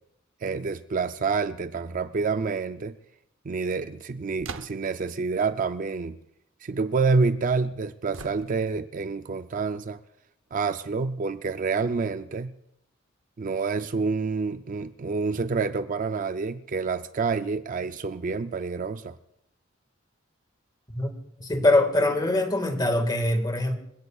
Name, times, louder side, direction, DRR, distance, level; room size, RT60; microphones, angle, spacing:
voice 1, 0.4-2.9 3.5-6.2 6.6-10.0 10.5-12.5 13.4-19.2, right 4 dB, 40° right, 0.4 m, -28 dB
sound 1, 4.4-5.1 8.1-8.9, right 4 dB, 75° right, 0.8 m, -40 dB
voice 2, 21.4-23.8, left 1 dB, 20° left, 1.8 m, -23 dB
27.5 x 16.0 x 2.4 m
head